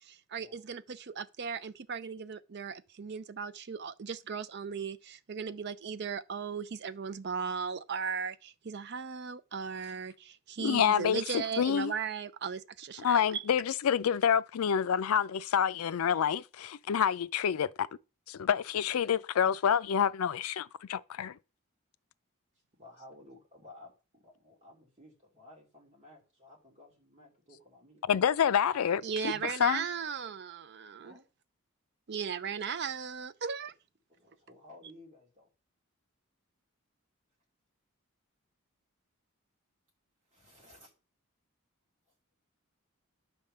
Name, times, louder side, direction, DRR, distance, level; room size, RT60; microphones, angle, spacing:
voice 1, 0.1-13.4 29.0-31.1 32.1-33.7, right 6 dB, 50° right, 0.5 m, -37 dB
voice 2, 10.6-11.9 13.0-17.9 18.3-21.4 28.1-29.9, left 8 dB, 85° left, 0.4 m, -28 dB
voice 3, 22.8-28.1 31.0-31.2 34.1-35.5 40.2-40.9, left 1 dB, 30° right, 2.9 m, -55 dB
10.0 x 3.6 x 6.6 m
head